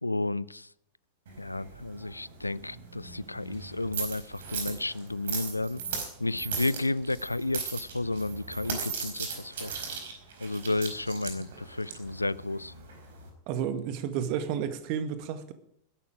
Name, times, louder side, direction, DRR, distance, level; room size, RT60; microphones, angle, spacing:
voice 1, 0.0-0.7 1.4-5.8 6.2-9.7 10.4-12.7, left 2 dB, 85° left, 0.5 m, -32 dB
sound 1, 1.3-13.3, right 5 dB, 60° right, 4.5 m, -38 dB
voice 2, 13.5-15.5, right 8 dB, 45° right, 1.7 m, -31 dB
20.0 x 11.0 x 4.9 m
figure-of-eight pair, 90°, 0 cm